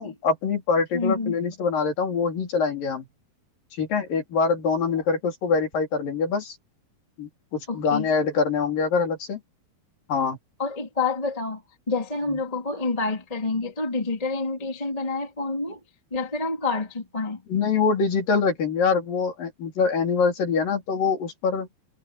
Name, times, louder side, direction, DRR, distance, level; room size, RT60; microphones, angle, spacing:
voice 1, 0.0-3.1 3.7-6.6 7.2-9.4 10.1-10.4 12.3-12.4 17.5-21.7, left 5 dB, 55° left, 5.0 m, -24 dB
voice 2, 0.9-1.3 7.7-8.1 10.6-11.6 11.9-15.8 16.1-17.4, left 3 dB, 10° left, 2.3 m, -28 dB
omnidirectional pair, 5.1 m